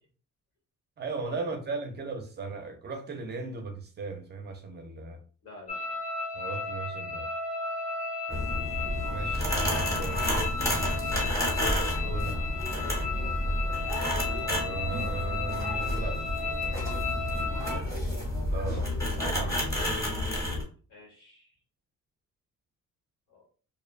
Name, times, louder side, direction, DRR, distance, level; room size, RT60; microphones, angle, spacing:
voice 1, 1.0-5.2 6.3-7.3 9.1-10.5 12.0-12.3 14.5-16.2 18.5-19.8, right 4 dB, 35° right, 0.4 m, -37 dB
voice 2, 5.4-6.0 11.9-12.4 12.7-13.0 17.6-17.9 20.9-21.6 23.3-23.5, left 4 dB, 75° left, 1.3 m, -47 dB
sound 1, 5.7-17.8, left 4 dB, 25° left, 0.5 m, -34 dB
sound 2, 8.3-20.6, left 1 dB, 10° left, 0.9 m, -30 dB
2.6 x 2.2 x 2.4 m
cardioid pair, 150°, 31 cm